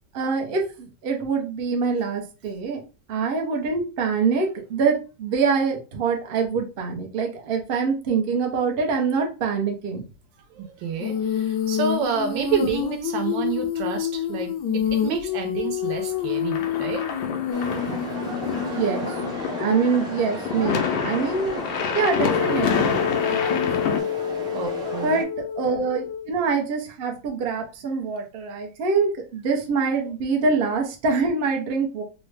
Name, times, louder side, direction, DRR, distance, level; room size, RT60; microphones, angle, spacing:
voice 1, 0.1-2.8 3.1-10.0 18.5-19.1 19.6-21.6 21.9-24.1 25.0-25.3 25.6-32.0, right 5 dB, 60° right, 0.5 m, -25 dB
voice 2, 10.5-17.0 24.5-25.2, right 6 dB, 80° right, 1.4 m, -29 dB
Female singing, 11.0-19.9 22.1-26.3, left 8 dB, 75° left, 1.0 m, -28 dB
sound 1, 16.3-24.0, left 6 dB, 90° left, 1.4 m, -28 dB
sound 2, 17.5-25.2, equal, 5° right, 0.3 m, -35 dB
3.7 x 2.1 x 3.2 m
omnidirectional pair, 2.0 m